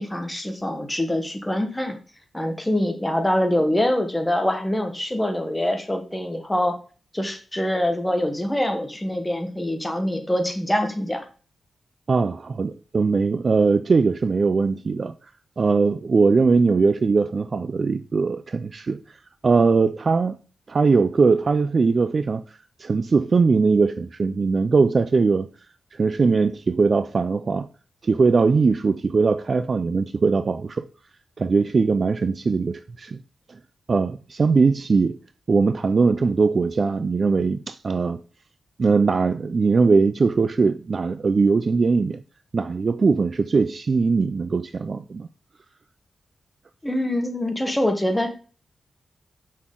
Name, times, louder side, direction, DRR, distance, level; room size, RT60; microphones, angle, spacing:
voice 1, 0.0-2.0 2.3-6.7 7.1-11.2 46.8-48.3, left 1 dB, 10° left, 1.1 m, -24 dB
voice 2, 12.1-15.1 15.6-19.0 19.4-20.4 20.7-22.4 22.8-25.5 25.9-27.7 28.0-30.8 31.4-33.2 33.9-35.2 35.5-38.2 38.8-42.2 42.5-45.3, right 4 dB, 40° right, 0.3 m, -20 dB
6.3 x 5.9 x 3.7 m
wide cardioid pair, 140°, 0 cm